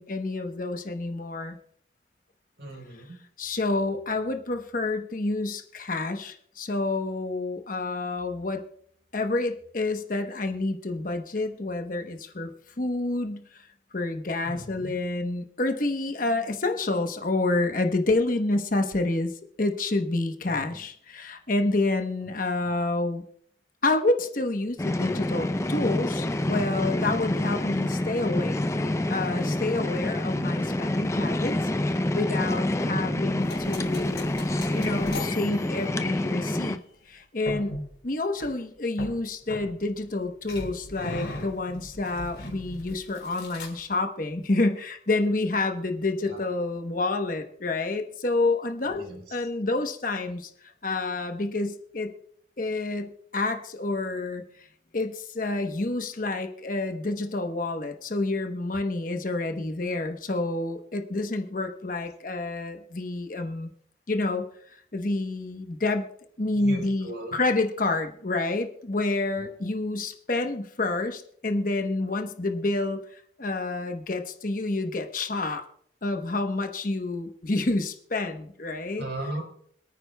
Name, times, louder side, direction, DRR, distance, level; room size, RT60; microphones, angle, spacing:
voice 1, 0.0-1.6 3.4-8.6 9.1-13.7 13.9-19.3 19.6-23.2 23.8-31.6 31.9-34.3 34.7-36.8 37.1-37.8 38.0-49.0 49.3-50.5 50.8-52.1 52.6-54.7 54.9-63.7 64.1-66.0 66.4-75.6 76.0-79.1, left 2 dB, 45° left, 5 dB, 1.0 m, -28 dB
voice 2, 2.6-3.2 14.4-14.9 20.4-20.8 22.6-22.7 32.8-33.2 46.2-46.4 48.8-49.3 66.5-67.3 69.4-69.5 79.0-79.4, right 1 dB, 65° right, 2 dB, 4.3 m, -37 dB
sound 1, 24.8-36.8, left 1 dB, 15° left, 0.4 m, -27 dB
sound 2, 33.4-36.4 37.5-37.9 38.4-38.5 39.0-40.1 40.5-43.9, left 1 dB, 60° left, 4.1 m, -39 dB
26.0 x 9.4 x 2.2 m, 0.64 s
head